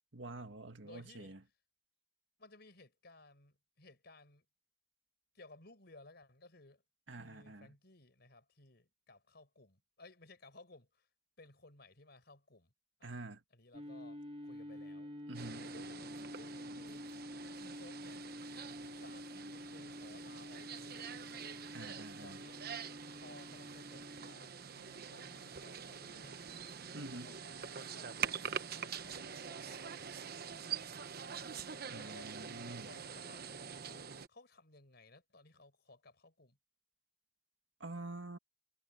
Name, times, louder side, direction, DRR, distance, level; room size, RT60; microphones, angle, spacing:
voice 1, 0.1-1.4 7.1-7.7 13.0-13.4 15.3-15.7 21.7-22.4 26.9-27.3 31.9-32.9 37.8-38.4, right 2 dB, 90° right, 2.0 m, -47 dB
voice 2, 0.8-1.4 2.4-4.5 5.3-6.8 7.2-11.1 11.4-12.7 13.0-13.2 13.5-15.1 15.6-17.1 17.6-18.2 19.0-21.6 22.2-22.6 23.2-26.6 27.1-28.3 28.7-31.2 31.7-33.5 33.8-36.6, left 2 dB, 60° left, 5.0 m, -60 dB
sound 1, 13.7-24.3, left 1 dB, 30° right, 1.6 m, -49 dB
sound 2, 15.3-34.3, right 7 dB, 55° right, 1.1 m, -45 dB
head